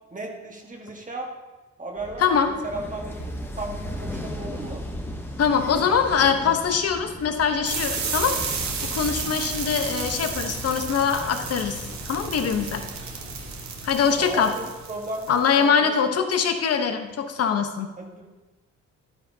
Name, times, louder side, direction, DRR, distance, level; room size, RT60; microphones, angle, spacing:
voice 1, 0.1-1.3 1.8-4.8 14.2-15.9 18.0-18.3, right 2 dB, 25° right, 0 dB, 1.6 m, -35 dB
sound 1, 2.0-12.5, equal, 5° left, 1.0 m, -37 dB
voice 2, 2.2-2.5 5.4-8.3 8.9-11.8 12.1-12.8 13.8-14.5 15.3-17.9, left 6 dB, 55° left, 6 dB, 1.1 m, -23 dB
sound 2, 7.6-15.5, right 5 dB, 65° right, 1.5 m, -32 dB
11.0 x 9.4 x 2.8 m, 1.1 s
cardioid pair, 90°, 30 cm